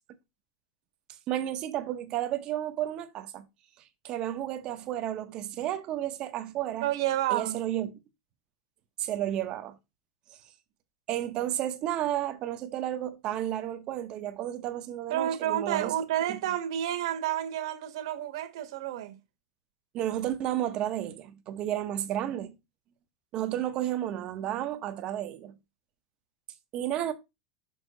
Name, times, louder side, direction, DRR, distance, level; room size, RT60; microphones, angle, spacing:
voice 1, 1.3-3.5 4.0-6.9 7.3-7.9 9.0-9.8 11.1-16.0 19.9-22.5 23.3-25.5 26.7-27.1, right 12 dB, 30° right, 0.8 m, -32 dB
voice 2, 6.8-7.6 15.1-19.2, right 12 dB, 60° right, 1.4 m, -30 dB
6.4 x 5.8 x 3.8 m
supercardioid pair, 175°, 3 cm